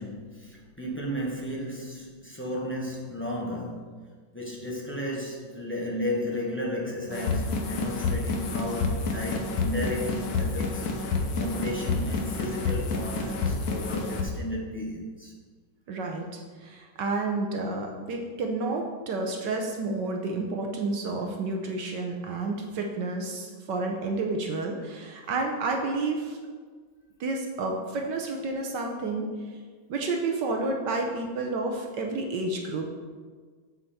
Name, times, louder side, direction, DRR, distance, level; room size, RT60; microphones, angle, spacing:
voice 1, 0.0-4.0 4.3-10.9 11.3-15.3, left 1 dB, 10° left, -3 dB, 0.9 m, -33 dB
sound 1, 7.1-14.2, left 3 dB, 60° left, 1.2 m, -29 dB
voice 2, 15.9-16.3 16.6-26.4 27.2-29.3 29.9-32.9, right 3 dB, 70° right, 2 dB, 1.4 m, -30 dB
7.2 x 6.7 x 4.2 m, 1.5 s
omnidirectional pair, 2.1 m